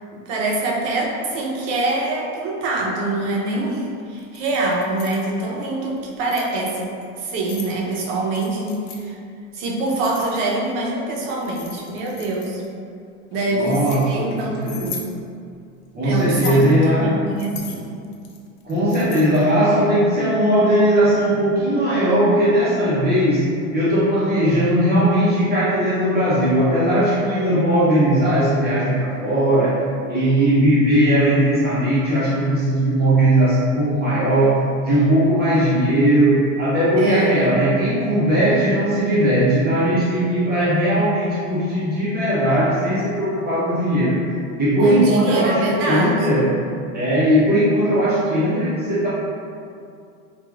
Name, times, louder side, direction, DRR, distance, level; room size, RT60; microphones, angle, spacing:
voice 1, 0.1-6.9 7.2-9.2 9.5-12.6 13.3-15.0 16.0-17.8 37.0-37.6 44.8-46.3, right 2 dB, 65° right, -3 dB, 0.7 m, -24 dB
Keys jangling, 4.2-5.3 6.0-6.5 7.2-7.7 8.3-9.0 9.9-10.7 11.2-12.7 13.3-14.0 14.6-15.1 16.2-16.7 17.4-19.5, left 6 dB, 45° left, 0.4 m, -38 dB
voice 2, 13.5-14.9 15.9-17.1 18.6-23.5 23.7-29.8 30.1-34.6 34.8-44.2 44.6-46.5 46.9-49.1, right 1 dB, 25° right, -10 dB, 0.7 m, -18 dB
2.9 x 2.3 x 2.3 m, 2.4 s
supercardioid pair, 110°, 40 cm